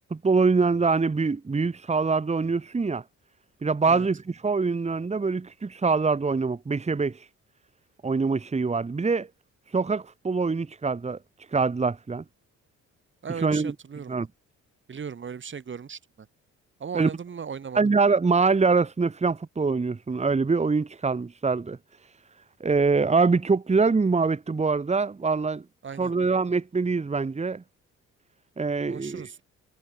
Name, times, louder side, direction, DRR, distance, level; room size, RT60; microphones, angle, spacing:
voice 1, 0.1-3.0 3.6-7.1 8.0-9.3 9.7-11.2 11.5-12.2 13.4-13.7 14.1-14.3 16.9-17.1 17.7-21.8 22.6-25.6 26.0-27.6 28.6-29.3, right 4 dB, 20° right, 1.6 m, -24 dB
voice 2, 13.2-14.2 14.9-16.3 16.8-17.8 25.8-26.1 28.9-29.4, right 6 dB, 40° right, 2.5 m, -37 dB
cardioid pair, 90°, 30 cm